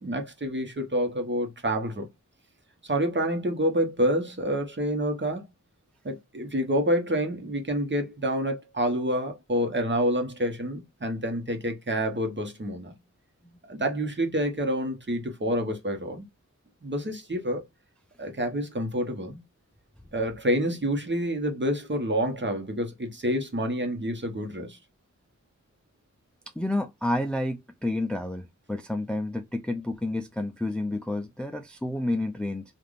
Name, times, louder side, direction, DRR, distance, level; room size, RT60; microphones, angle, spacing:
voice 1, 0.0-2.1 2.8-5.4 6.0-12.9 13.7-16.2 16.8-17.6 18.2-19.4 20.1-24.8, equal, 35° right, 1.1 m, -28 dB
voice 2, 26.6-32.6, left 1 dB, 5° left, 0.4 m, -30 dB
3.3 x 2.5 x 2.5 m
cardioid pair, 50°, 31 cm